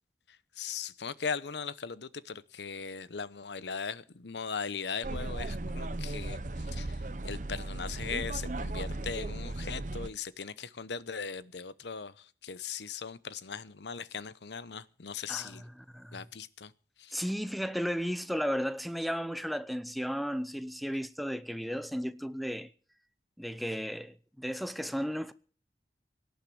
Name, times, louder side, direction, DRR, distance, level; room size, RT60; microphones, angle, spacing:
voice 1, 0.6-15.6 16.1-16.7 17.0-17.2, left 6 dB, 80° left, 0.8 m, -39 dB
sound 1, 5.0-10.1, right 2 dB, 45° right, 0.8 m, -36 dB
voice 2, 15.3-16.2 17.1-22.7 23.4-25.3, equal, ahead, 0.7 m, -34 dB
18.0 x 10.5 x 7.8 m
head